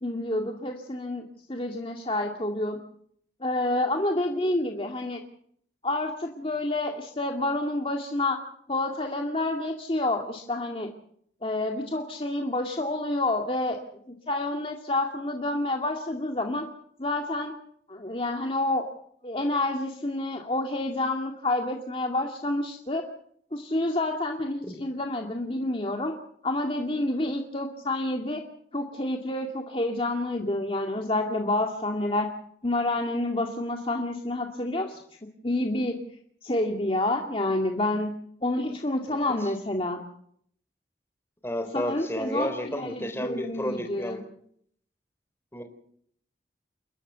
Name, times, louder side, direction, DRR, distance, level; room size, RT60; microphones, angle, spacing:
voice 1, 0.0-1.2 1.5-2.8 3.4-5.2 5.8-8.4 8.7-10.9 11.4-13.8 14.1-16.7 17.0-17.5 17.9-18.8 19.2-23.0 23.5-26.1 26.4-28.4 28.7-32.3 32.6-35.0 35.4-36.0 36.4-38.1 38.4-40.0 41.7-44.2, left 2 dB, 30° left, 2 dB, 2.2 m, -28 dB
voice 2, 39.1-39.5 41.4-44.2 45.5-45.6, equal, 15° left, 6 dB, 3.9 m, -32 dB
29.5 x 12.5 x 8.1 m, 0.67 s
head